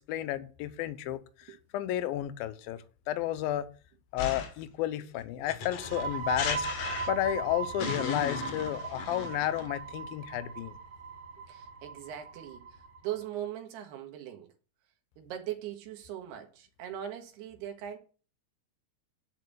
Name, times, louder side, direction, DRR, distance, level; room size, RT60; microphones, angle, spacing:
voice 1, 0.1-1.2 1.7-2.8 3.1-3.7 4.1-6.7 7.1-10.7, left 13 dB, 75° left, 2.4 m, -32 dB
sound 1, 4.2-4.7 5.5-7.4 7.8-9.7, left 6 dB, 55° left, 2.0 m, -36 dB
sound 2, 5.7-13.1, right 5 dB, 40° right, 3.7 m, -39 dB
voice 2, 11.5-14.5 15.2-18.0, right 11 dB, 80° right, 3.5 m, -40 dB
10.5 x 5.4 x 6.8 m
omnidirectional pair, 4.7 m